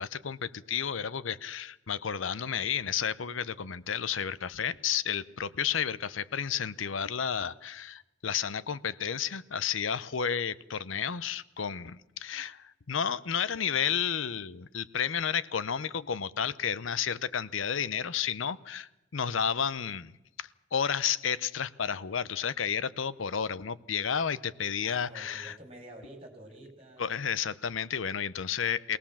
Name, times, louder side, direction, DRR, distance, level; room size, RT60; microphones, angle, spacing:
voice 1, 0.0-20.1 20.4-25.5 27.0-29.0, left 7 dB, 90° left, 17 dB, 0.7 m, -32 dB
voice 2, 24.8-27.1, right 1 dB, 30° right, 3 dB, 4.3 m, -48 dB
23.0 x 18.0 x 7.2 m, 0.94 s
head